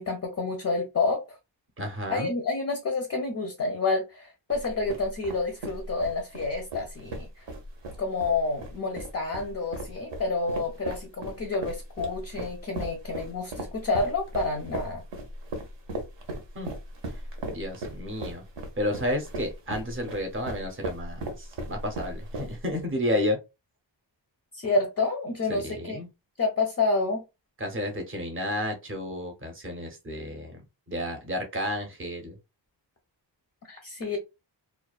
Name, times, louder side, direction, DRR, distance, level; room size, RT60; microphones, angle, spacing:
voice 1, 0.0-1.4 2.1-7.5 8.0-15.0 24.5-26.0 26.4-27.2 33.7-34.2, left 3 dB, 35° left, 0.4 m, -29 dB
voice 2, 1.8-2.3 16.5-16.7 17.0-17.2 17.5-18.4 18.8-23.4 25.5-26.1 27.6-30.6 30.9-32.4, left 1 dB, 30° right, 0.6 m, -31 dB
sound 1, 4.5-22.8, right 1 dB, 70° right, 0.8 m, -37 dB
2.3 x 2.3 x 2.3 m
wide cardioid pair, 145°, 45 cm